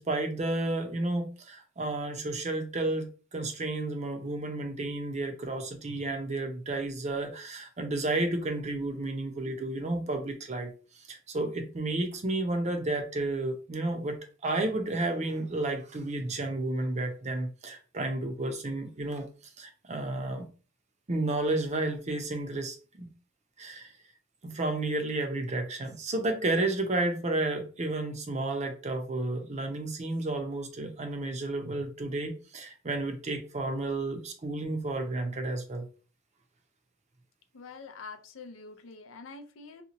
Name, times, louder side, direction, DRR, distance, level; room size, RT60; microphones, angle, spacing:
voice 1, 0.0-3.1 3.3-19.2 19.6-20.5 21.1-23.1 23.6-23.9 24.4-35.9, right 2 dB, 35° right, 5 dB, 0.6 m, -32 dB
voice 2, 37.5-39.8, left 4 dB, 75° left, 6 dB, 0.5 m, -45 dB
2.8 x 2.3 x 3.9 m, 0.37 s
head